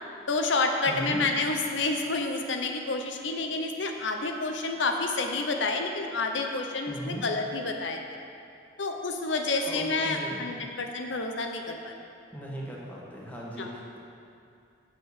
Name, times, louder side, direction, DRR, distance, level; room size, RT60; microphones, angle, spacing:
voice 1, 0.3-8.0 8.8-11.9 13.6-13.7, left 3 dB, 70° left, 3 dB, 0.8 m, -29 dB
voice 2, 0.9-1.2 6.9-7.2 9.6-10.5 12.3-14.0, right 1 dB, 10° left, -5 dB, 1.4 m, -38 dB
7.7 x 7.2 x 6.6 m, 2.5 s
head